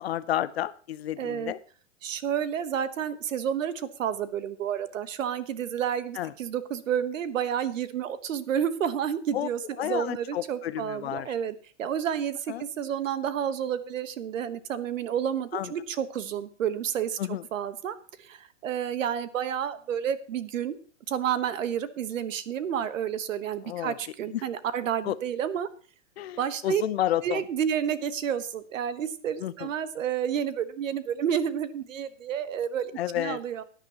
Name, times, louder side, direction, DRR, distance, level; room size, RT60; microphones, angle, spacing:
voice 1, 0.0-1.6 6.2-6.3 9.3-9.5 9.8-11.3 12.5-12.6 15.5-15.7 17.2-17.4 23.6-24.0 24.3-24.4 25.0-25.2 26.2-27.4 29.4-29.7 33.0-33.4, left 12 dB, 55° left, 16 dB, 0.6 m, -30 dB
voice 2, 1.2-1.5 2.0-20.8 21.1-25.7 26.4-26.8 27.2-33.6, right 9 dB, 80° right, 14 dB, 1.2 m, -30 dB
16.5 x 10.0 x 2.9 m, 0.41 s
hypercardioid pair, 175°, 38 cm